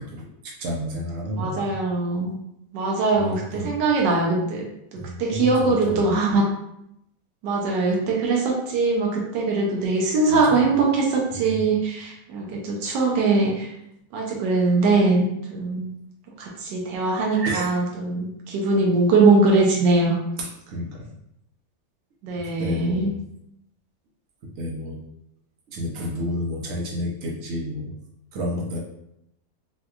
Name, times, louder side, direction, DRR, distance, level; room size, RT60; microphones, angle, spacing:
voice 1, 0.0-1.8 3.1-3.8 4.9-6.4 10.3-10.6 11.3-11.6 17.3-17.7 20.4-21.1 22.4-23.2 24.5-25.0 25.7-27.9 28.3-28.8, equal, 60° right, -2 dB, 0.9 m, -31 dB
voice 2, 1.3-2.4 2.7-6.5 7.4-13.7 14.1-16.0 16.4-20.2 22.2-23.1, right 3 dB, 85° right, -2 dB, 1.3 m, -22 dB
4.3 x 2.3 x 2.3 m, 0.79 s
omnidirectional pair, 1.8 m